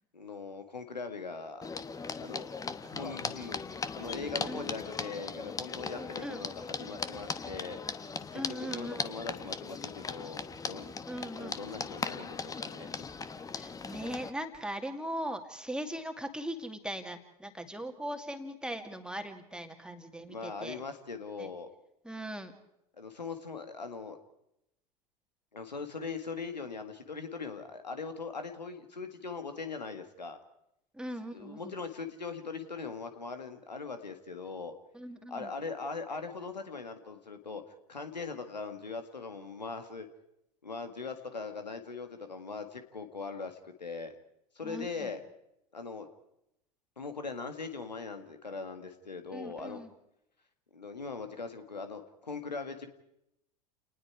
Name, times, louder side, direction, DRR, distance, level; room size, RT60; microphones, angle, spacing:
voice 1, 0.1-1.7 2.2-2.5 2.9-3.6 3.9-7.8 8.3-10.9 11.4-12.9 20.3-21.7 23.0-24.2 25.5-30.4 31.3-34.7 35.3-37.6 37.9-40.1 40.6-44.1 44.6-45.2 45.7-46.1 47.0-49.8 50.7-52.9, left 4 dB, 85° left, 7 dB, 1.9 m, -40 dB
sound 1, 1.6-14.3, left 5 dB, 15° left, 1.1 m, -39 dB
voice 2, 5.9-6.4 8.3-9.1 11.1-11.5 13.6-20.8 21.4-21.5 22.0-22.5 30.9-31.8 34.9-35.5 44.6-45.1 49.3-49.9, right 1 dB, 5° right, 5 dB, 2.2 m, -40 dB
29.5 x 19.5 x 4.8 m, 0.82 s
figure-of-eight pair, 85°, 21 cm